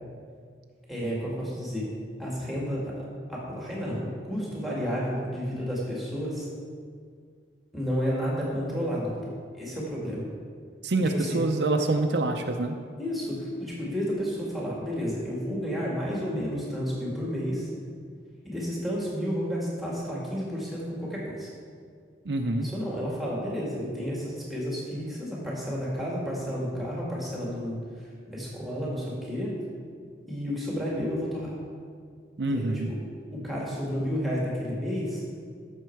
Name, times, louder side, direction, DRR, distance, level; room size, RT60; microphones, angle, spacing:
voice 1, 0.9-1.9 2.2-2.9 3.3-6.5 7.7-10.3 11.1-11.4 13.0-17.7 18.4-21.5 22.6-27.8 28.3-29.5 30.3-31.5 32.5-33.0 33.3-35.2, equal, ahead, -5 dB, 2.2 m, -31 dB
voice 2, 10.8-12.8 22.3-22.7 32.4-32.9, right 2 dB, 80° right, 4 dB, 0.7 m, -26 dB
13.5 x 6.7 x 4.7 m, 2.1 s
head